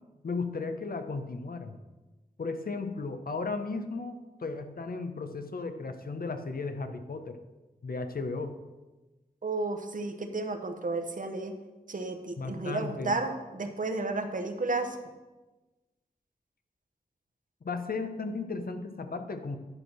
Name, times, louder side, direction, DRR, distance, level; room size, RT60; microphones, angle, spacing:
voice 1, 0.2-1.8 2.4-7.4 7.8-8.5 12.4-13.2 17.6-19.6, left 3 dB, 70° left, 7 dB, 0.8 m, -35 dB
voice 2, 9.4-11.6 11.9-15.0, right 3 dB, 60° right, 6 dB, 0.9 m, -32 dB
11.0 x 4.6 x 5.9 m, 1.1 s
wide cardioid pair, 80°, 16 cm